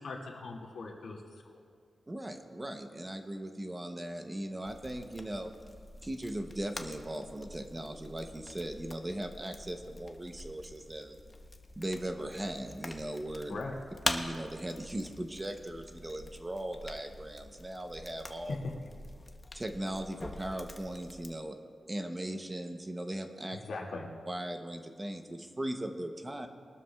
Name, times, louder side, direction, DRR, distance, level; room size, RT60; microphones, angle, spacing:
voice 1, 0.0-1.6 13.5-13.7 18.5-18.7 23.5-24.1, left 3 dB, 75° left, -2 dB, 2.0 m, -40 dB
voice 2, 2.1-5.5 6.0-11.2 11.8-13.6 14.1-18.6 19.5-21.6 21.9-23.6 24.3-26.5, right 1 dB, 15° right, 5 dB, 0.7 m, -38 dB
sound 1, 4.6-21.3, left 2 dB, 20° left, 0.7 m, -44 dB
22.0 x 13.0 x 2.3 m, 2.1 s
wide cardioid pair, 170°, 0 cm